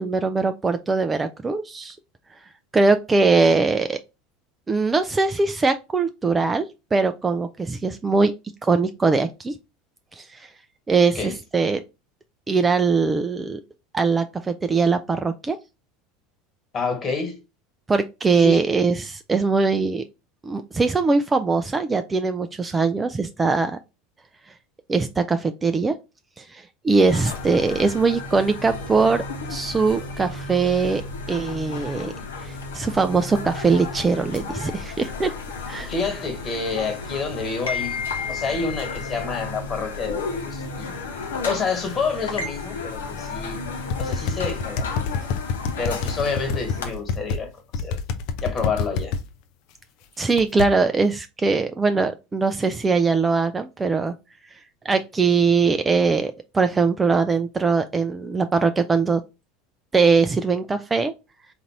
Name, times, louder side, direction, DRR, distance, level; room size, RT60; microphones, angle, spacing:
voice 1, 0.0-2.0 2.7-4.0 4.7-8.3 8.6-9.5 10.2-10.5 10.9-11.8 12.5-13.6 13.9-15.6 17.9-20.0 20.4-23.8 24.9-26.0 26.4-29.2 29.5-31.0 31.3-32.1 32.4-35.3 35.7-35.9 50.2-54.1 54.8-59.2 59.9-61.1, right 4 dB, 20° right, 0.4 m, -21 dB
voice 2, 16.7-17.4 18.3-18.6 35.9-38.0 38.3-40.9 41.4-43.6 44.0-45.0 45.8-48.0 48.4-49.1, left 4 dB, 30° left, 1.6 m, -28 dB
sound 1, 27.1-46.9, left 3 dB, 75° left, 0.9 m, -33 dB
sound 2, 43.9-47.4 47.7-49.2 50.4-50.7, left 5 dB, 55° left, 0.5 m, -26 dB
3.9 x 2.6 x 4.4 m
figure-of-eight pair, 75°, 0 cm